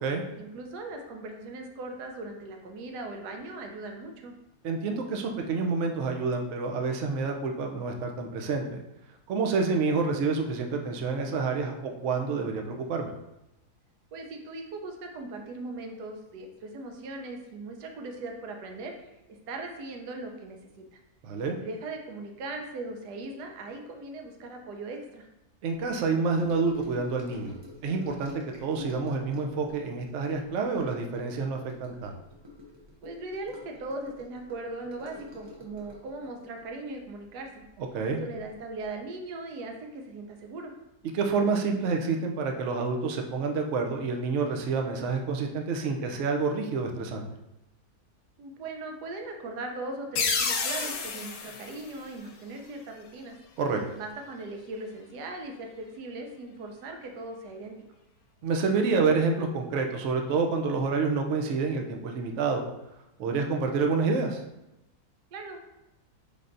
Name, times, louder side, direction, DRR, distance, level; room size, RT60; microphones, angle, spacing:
voice 1, 0.4-4.3 14.1-18.9 19.5-20.8 21.6-25.3 33.0-37.6 38.2-40.7 48.4-53.4 54.0-57.8 65.3-65.7, right 2 dB, 85° right, 3 dB, 1.3 m, -39 dB
voice 2, 4.6-8.8 9.3-13.1 21.2-21.6 25.6-27.5 27.8-28.3 28.6-32.2 37.9-38.2 41.1-47.2 53.6-53.8 58.4-62.6 63.2-64.4, right 4 dB, 65° right, 3 dB, 0.7 m, -28 dB
Gurgling / Sink (filling or washing) / Trickle dribble, 26.3-38.0 38.2-38.6 38.8-38.9, left 3 dB, 25° right, 0.6 m, -47 dB
sound 1, 50.2-52.7, left 5 dB, 70° left, 1.0 m, -31 dB
5.4 x 3.4 x 2.5 m, 0.92 s
omnidirectional pair, 1.7 m